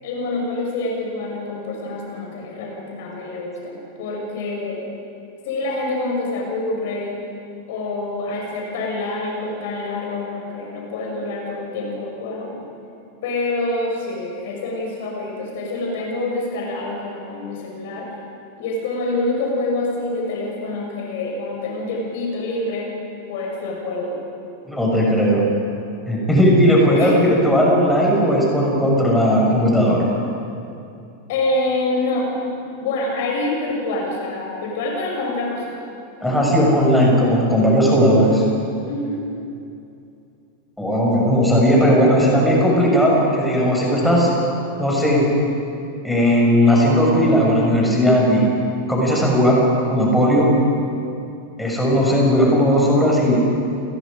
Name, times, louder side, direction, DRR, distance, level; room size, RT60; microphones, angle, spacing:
voice 1, 0.0-4.8 5.4-7.2 7.7-12.6 13.2-18.1 18.6-22.9 23.3-24.1 27.0-27.3 31.3-35.8 36.2-36.4 38.1-38.6 38.9-39.2, left 2 dB, 50° left, -1 dB, 6.2 m, -26 dB
voice 2, 24.7-25.4 26.1-30.1 36.2-38.4 40.8-44.3 44.8-45.3 46.0-48.5 48.9-49.6 49.9-50.5 51.6-53.4, equal, 5° left, -3 dB, 6.6 m, -16 dB
30.0 x 21.5 x 5.3 m, 2.6 s
figure-of-eight pair, 90°, 0 cm